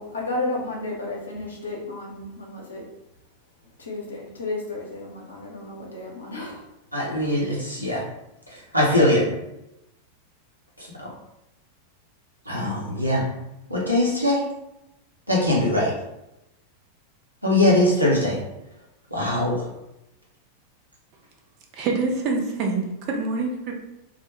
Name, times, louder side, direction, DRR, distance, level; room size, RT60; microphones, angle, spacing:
voice 1, 0.0-2.8 3.8-6.6, left 2 dB, 75° left, -2 dB, 0.6 m, -32 dB
voice 2, 6.9-8.0 8.7-9.3 11.0-11.1 12.5-13.3 13.7-14.4 15.3-15.9 17.4-18.4 19.1-19.6, left 1 dB, 90° right, -5 dB, 0.7 m, -21 dB
voice 3, 21.7-23.7, right 3 dB, 40° right, 1 dB, 0.5 m, -26 dB
2.1 x 2.0 x 2.9 m, 0.88 s
figure-of-eight pair, 90°, 0 cm